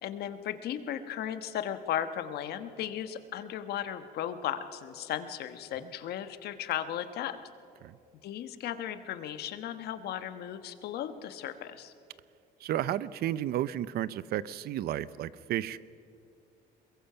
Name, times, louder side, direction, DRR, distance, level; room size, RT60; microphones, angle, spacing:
voice 1, 0.0-7.4 8.2-11.9, left 10 dB, 70° left, 10 dB, 1.2 m, -36 dB
voice 2, 12.6-15.8, right 12 dB, 65° right, 18 dB, 0.6 m, -32 dB
22.5 x 21.5 x 5.7 m, 2.5 s
cardioid pair, 110°, 17 cm